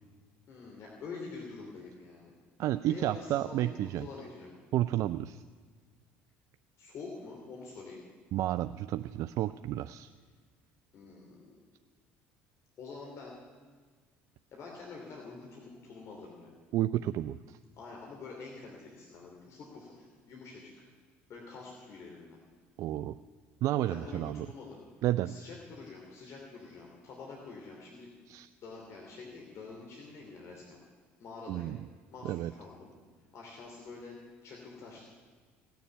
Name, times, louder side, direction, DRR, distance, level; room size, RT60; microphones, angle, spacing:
voice 1, 0.5-2.3 2.7-4.5 6.8-8.0 10.9-11.5 12.8-13.4 14.5-16.6 17.8-20.9 21.3-22.4 23.9-24.8 25.2-28.1 28.6-30.6 31.2-31.8 32.1-32.9 33.3-35.1, left 4 dB, 55° left, -2 dB, 3.0 m, -46 dB
voice 2, 2.6-4.1 4.7-5.4 8.3-10.1 16.7-17.6 22.8-23.1 23.6-24.5 25.0-25.3 28.3-28.5 31.5-31.8 32.2-32.5, right 14 dB, 60° right, 11 dB, 0.4 m, -31 dB
17.5 x 7.1 x 9.1 m, 1.5 s
supercardioid pair, 80°, 6 cm